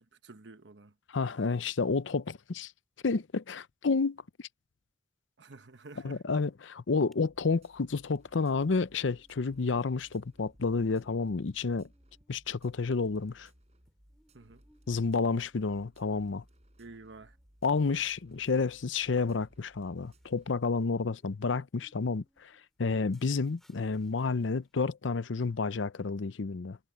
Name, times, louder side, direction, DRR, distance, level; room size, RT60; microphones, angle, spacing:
voice 1, 0.0-0.9 5.4-6.2 14.3-14.6 16.8-17.4 23.2-23.4, right 3 dB, 70° right, 1.1 m, -51 dB
voice 2, 1.1-2.7 3.0-4.2 6.0-11.9 12.3-13.5 14.9-16.4 17.6-26.8, left 4 dB, 85° left, 0.6 m, -30 dB
sound 1, 5.5-6.1 6.4-6.5 6.8-7.2 7.7-24.8, equal, ahead, 5.7 m, -73 dB
sound 2, 7.2-20.5, equal, 35° right, 6.2 m, -62 dB
head